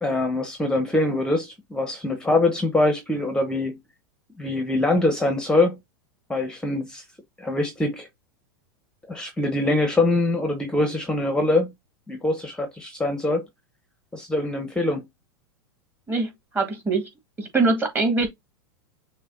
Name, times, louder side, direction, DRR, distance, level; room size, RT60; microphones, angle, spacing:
voice 1, 0.0-3.8 4.4-5.8 6.3-7.0 7.4-8.1 9.1-11.7 12.1-13.5 14.1-15.1, left 2 dB, 5° left, 0.9 m, -23 dB
voice 2, 16.1-17.1 17.4-18.3, right 3 dB, 15° right, 1.7 m, -23 dB
6.3 x 2.2 x 3.8 m
hypercardioid pair, 110°, 12 cm